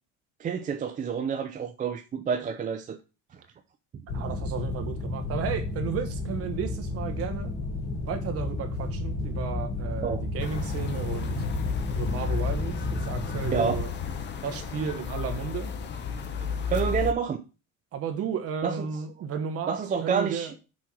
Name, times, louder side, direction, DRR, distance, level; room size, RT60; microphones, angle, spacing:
voice 1, 0.4-3.0 10.0-10.2 13.5-13.8 16.7-17.4 18.6-19.0 19.7-20.5, right 6 dB, 25° right, 0.5 m, -28 dB
sound 1, 4.1-13.8, left 2 dB, 75° left, 3.8 m, -32 dB
voice 2, 4.1-7.5 8.0-11.3 11.9-13.9 14.4-15.7 17.9-19.8 20.0-20.5, right 7 dB, 45° right, 1.2 m, -33 dB
sound 2, 10.4-17.1, left 6 dB, 35° left, 0.8 m, -33 dB
6.2 x 4.4 x 6.1 m
cardioid pair, 170°, 32 cm